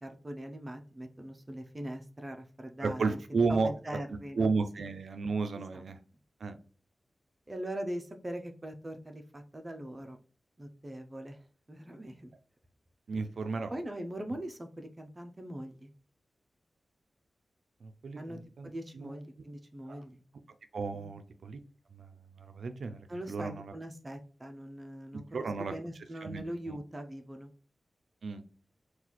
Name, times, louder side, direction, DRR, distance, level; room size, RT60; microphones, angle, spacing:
voice 1, 0.0-4.5 5.5-5.8 7.5-10.2 10.6-12.3 13.7-15.9 18.2-18.4 18.6-20.2 20.9-21.2 23.1-27.5, right 1 dB, 25° right, 5 dB, 0.5 m, -42 dB
voice 2, 2.8-3.7 4.4-6.0 6.4-6.6 13.1-13.7 17.8-19.1 19.9-20.0 20.7-21.6 21.9-22.1 22.4-23.0 23.3-23.7 25.3-25.7 26.2-26.8 28.2-28.4, right 4 dB, 80° right, 8 dB, 0.4 m, -33 dB
3.9 x 2.4 x 3.0 m, 0.40 s
wide cardioid pair, 95°, 0 cm